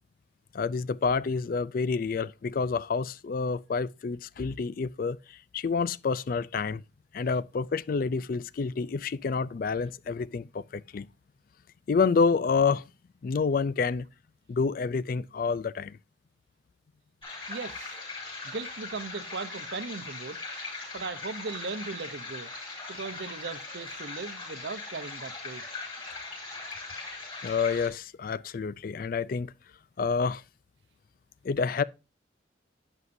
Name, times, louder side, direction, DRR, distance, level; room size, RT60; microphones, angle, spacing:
voice 1, 0.5-6.8 7.1-11.1 11.9-12.8 13.2-14.1 14.5-16.0 27.4-29.5 30.0-30.4 31.4-31.8, left 5 dB, 50° left, 0.3 m, -28 dB
sound 1, 17.2-27.9, left 3 dB, 25° left, 4.2 m, -40 dB
voice 2, 17.5-17.9 18.4-20.4 20.9-22.5 22.9-25.6, right 4 dB, 65° right, 0.8 m, -38 dB
11.0 x 8.1 x 2.6 m
head